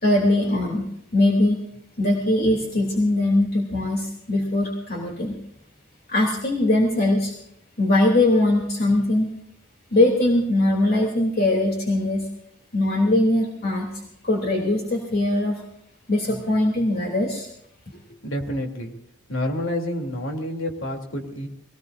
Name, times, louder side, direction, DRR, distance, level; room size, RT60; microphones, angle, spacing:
voice 1, 0.0-1.6 2.0-5.4 6.1-7.3 7.8-9.3 9.9-12.3 12.7-13.9 14.2-15.6 16.1-17.5, left 1 dB, 50° left, -1 dB, 3.2 m, -21 dB
voice 2, 17.9-18.9 19.3-21.5, left 1 dB, 80° left, 2 dB, 3.2 m, -29 dB
22.5 x 19.5 x 2.7 m, 0.78 s
head